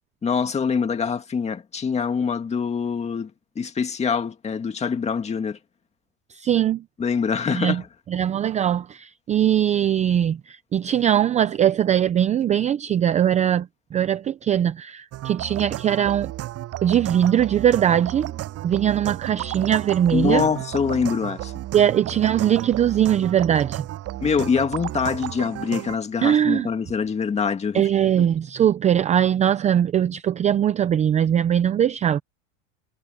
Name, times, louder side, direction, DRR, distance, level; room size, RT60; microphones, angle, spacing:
voice 1, 0.2-5.6 7.0-7.9 20.1-21.5 24.2-28.1, left 6 dB, 15° left, 2.1 m, -24 dB
voice 2, 6.3-6.8 7.5-7.8 8.1-16.3 16.8-18.3 18.6-20.4 21.7-23.9 26.2-26.7 27.7-32.2, right 10 dB, 20° right, 0.6 m, -21 dB
sound 1, 15.1-26.0, right 15 dB, 40° right, 7.9 m, -33 dB
supercardioid pair, 145°, 39 cm